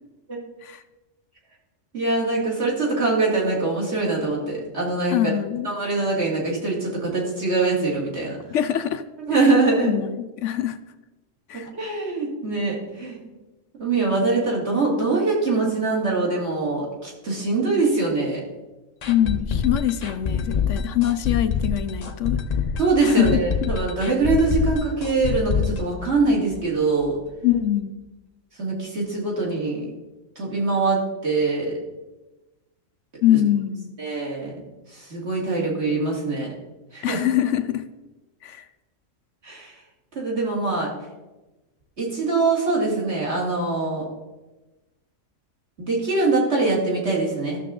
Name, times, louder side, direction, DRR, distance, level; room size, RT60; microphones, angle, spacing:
voice 1, 1.9-5.3 5.6-8.4 9.3-9.9 11.7-13.2 13.8-18.4 22.8-27.2 28.6-29.9 30.4-31.8 33.3-33.4 34.0-34.6 34.9-36.5 36.9-37.2 39.4-39.7 40.1-40.9 42.0-44.1 45.8-47.6, right 3 dB, 50° right, -4 dB, 2.7 m, -23 dB
voice 2, 5.1-5.7 8.5-9.0 9.4-9.5 9.8-10.8 11.5-11.7 19.1-22.4 23.0-23.3 23.6-23.7 27.4-27.9 33.2-33.9 37.0-37.8 38.4-38.6, left 12 dB, 70° left, 11 dB, 0.9 m, -23 dB
sound 1, 19.0-26.8 27.0-27.1 27.5-27.6, left 6 dB, 45° left, 0.5 m, -25 dB
13.5 x 6.6 x 3.8 m, 1.1 s
omnidirectional pair, 1.4 m